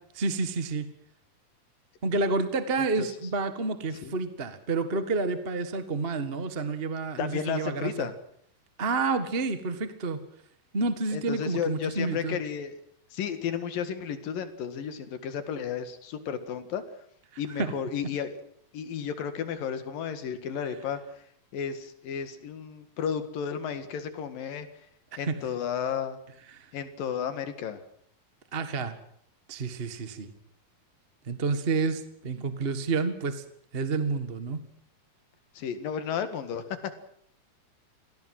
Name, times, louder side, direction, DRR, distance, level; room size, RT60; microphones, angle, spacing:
voice 1, 0.1-0.9 2.0-8.1 8.8-10.2 10.7-12.4 17.6-17.7 25.1-25.3 26.5-26.6 28.5-28.9 29.5-30.3 31.3-33.4 33.7-34.6, right 3 dB, 40° right, 10 dB, 0.8 m, -29 dB
voice 2, 7.2-8.1 11.1-12.7 13.1-16.8 17.4-18.4 18.7-21.0 21.5-24.7 25.2-26.2 26.7-27.8 35.5-36.6, left 7 dB, 70° left, 10 dB, 3.5 m, -33 dB
24.5 x 17.5 x 7.8 m, 0.65 s
omnidirectional pair, 4.2 m